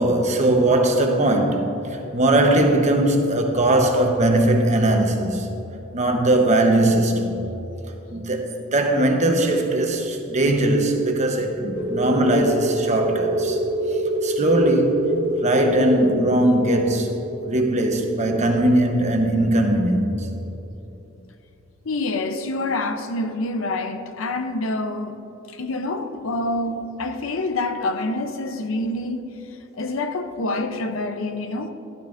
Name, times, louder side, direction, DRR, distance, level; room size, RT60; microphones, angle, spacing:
voice 1, 0.0-5.5 5.9-7.3 8.1-13.6 13.9-15.1 15.4-17.1 17.4-20.3, right 1 dB, 35° right, 1.0 m, -20 dB
sound 1, 11.7-20.1, equal, 10° left, 1.2 m, -26 dB
voice 2, 21.8-25.2 25.5-29.3 29.7-31.7, left 2 dB, 75° left, 0.6 m, -27 dB
12.5 x 12.0 x 2.6 m
head